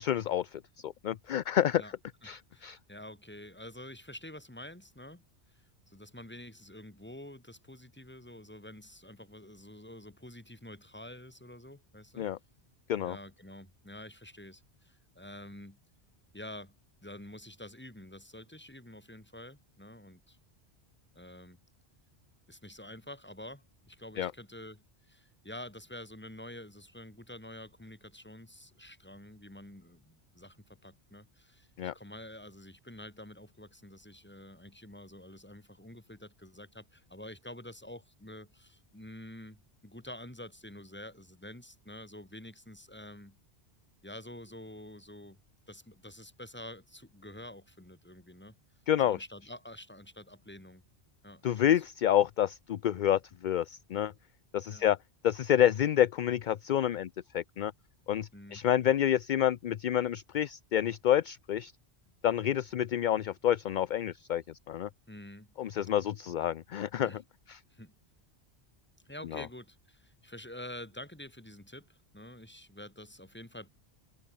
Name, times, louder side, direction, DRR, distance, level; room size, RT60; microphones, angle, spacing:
voice 1, 0.0-1.8 2.2-2.8 12.2-12.4 12.9-13.2 24.2-24.3 31.8-31.9 48.9-49.2 51.4-54.1 54.5-55.0 55.2-57.7 58.1-61.7 62.2-64.9 65.6-67.1 67.5-67.6 69.3-69.4, left 11 dB, 55° left, 0.6 m, -28 dB
voice 2, 2.2-5.2 5.5-12.3 13.0-15.8 16.3-16.7 17.0-20.4 21.1-21.6 22.5-31.7 31.9-43.4 44.0-45.4 45.7-48.5 49.0-50.8 51.2-51.8 54.7-54.9 58.3-58.6 65.1-65.5 67.0-67.2 67.7-67.9 69.0-73.7, left 1 dB, 10° left, 2.4 m, -48 dB
omnidirectional pair, 1.1 m